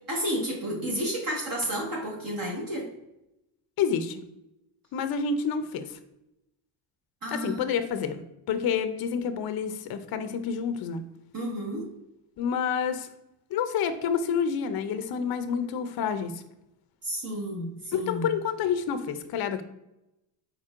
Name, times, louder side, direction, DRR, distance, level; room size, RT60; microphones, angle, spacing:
voice 1, 0.1-2.9 7.2-7.7 11.3-11.8 17.0-18.3, equal, 45° right, -3 dB, 1.5 m, -31 dB
voice 2, 3.8-4.2 4.9-6.0 7.3-11.0 12.4-13.1 13.5-16.4 17.9-19.6, left 7 dB, 50° left, 10 dB, 0.6 m, -28 dB
4.3 x 4.2 x 2.5 m, 0.88 s
cardioid pair, 90°, 49 cm